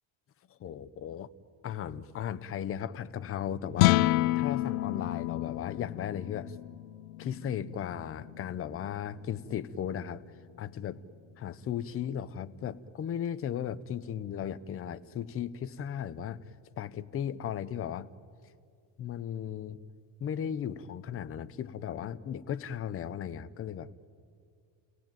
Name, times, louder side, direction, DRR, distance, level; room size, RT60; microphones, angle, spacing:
voice 1, 0.5-1.3 1.6-4.1 4.3-6.6 7.2-10.2 10.6-11.0 11.4-16.4 16.8-18.1 19.0-19.8 20.2-23.9, left 9 dB, 30° left, 12 dB, 0.8 m, -36 dB
sound 1, 3.7-10.1, left 18 dB, 90° left, 0.8 m, -30 dB
29.5 x 18.0 x 9.1 m, 2.3 s
cardioid pair, 155°, 49 cm